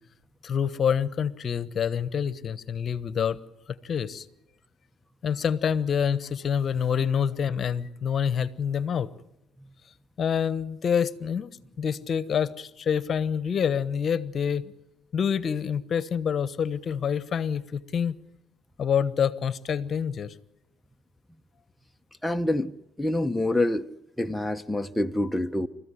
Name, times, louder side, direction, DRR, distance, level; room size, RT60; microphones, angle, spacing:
voice 1, 0.4-3.4 3.8-4.3 5.2-9.1 10.2-11.5 11.8-14.7 15.1-18.2 18.8-20.3, left 7 dB, 45° left, 1.1 m, -27 dB
voice 2, 22.2-22.7 23.0-23.9 24.2-25.7, left 1 dB, 5° left, 0.8 m, -26 dB
29.5 x 14.5 x 10.0 m
supercardioid pair, 90°, 0 cm